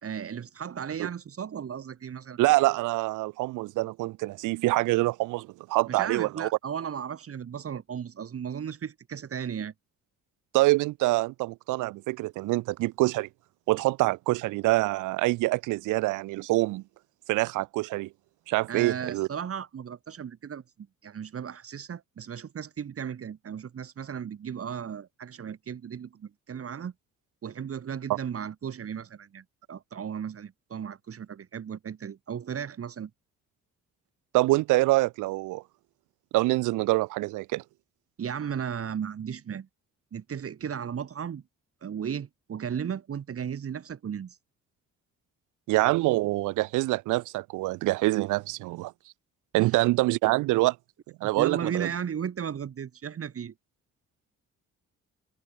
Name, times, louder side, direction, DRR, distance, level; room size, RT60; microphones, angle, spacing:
voice 1, 0.0-2.4 5.9-9.7 18.7-20.6 21.0-26.9 27.4-33.1 38.2-39.7 40.1-41.4 41.8-44.4 49.6-49.8 51.4-53.5, right 8 dB, 50° right, 2.4 m, -35 dB
voice 2, 2.4-6.5 10.5-13.3 13.7-16.8 17.3-18.1 18.5-19.3 34.3-35.6 36.3-37.6 45.7-48.9 49.5-50.8 51.2-51.9, right 20 dB, 85° right, 0.5 m, -25 dB
cardioid pair, 90°, 30 cm